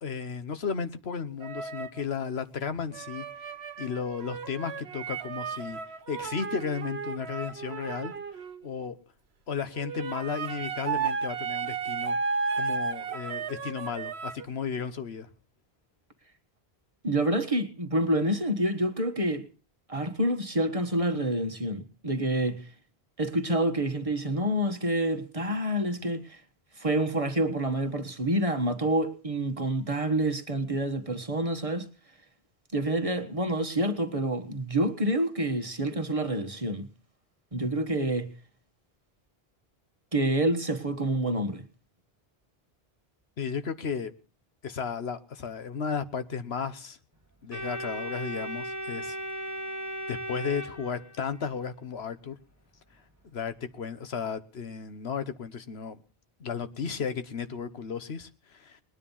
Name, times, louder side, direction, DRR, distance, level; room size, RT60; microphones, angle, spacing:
voice 1, 0.0-3.2 3.8-5.8 6.1-8.1 8.6-9.0 9.5-12.2 12.5-15.3 43.4-44.1 44.6-47.0 47.4-49.2 50.1-52.4 53.3-56.0 56.4-58.8, left 6 dB, 90° left, 1.4 m, -34 dB
sound 1, 1.4-2.1 2.9-8.6 9.8-14.5, right 5 dB, 90° right, 1.3 m, -34 dB
voice 2, 17.0-19.5 19.9-22.7 23.2-26.4 26.8-31.9 32.7-36.9 37.5-38.3 40.1-41.6, right 1 dB, 35° right, 1.5 m, -28 dB
Organ, 47.5-51.4, right 1 dB, 15° right, 1.7 m, -36 dB
20.5 x 10.0 x 5.6 m
omnidirectional pair, 1.0 m